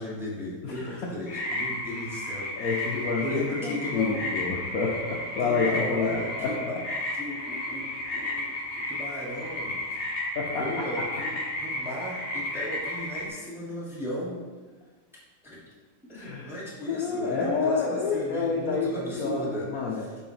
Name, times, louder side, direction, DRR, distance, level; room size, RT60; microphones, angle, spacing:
voice 1, 0.0-2.5 3.2-4.2 5.4-6.8 7.1-8.5 8.9-9.8 10.6-14.4 15.4-15.6 16.1-20.1, left 1 dB, ahead, -6 dB, 1.1 m, -36 dB
voice 2, 0.6-1.1 2.6-6.7 10.4-10.8 16.1-16.5 16.9-20.1, left 4 dB, 85° left, -2 dB, 0.7 m, -29 dB
sound 1, 1.3-13.3, left 1 dB, 35° left, 0.9 m, -33 dB
5.6 x 4.1 x 5.6 m, 1.4 s
omnidirectional pair, 2.4 m